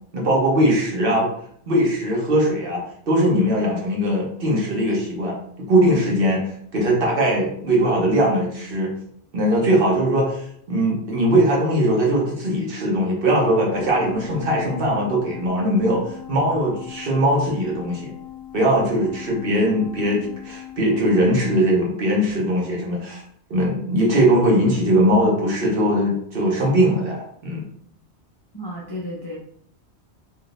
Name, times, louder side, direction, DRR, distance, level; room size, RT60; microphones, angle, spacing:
voice 1, 0.1-1.3 1.7-5.4 5.7-8.9 9.3-18.1 18.5-23.2 23.5-27.6, right 1 dB, 55° right, -2 dB, 1.1 m, -20 dB
sound 1, 13.7-21.6, left 11 dB, 65° left, 0.8 m, -39 dB
voice 2, 28.5-29.4, equal, 30° left, -6 dB, 0.5 m, -32 dB
3.6 x 2.7 x 2.4 m, 0.65 s
omnidirectional pair, 1.2 m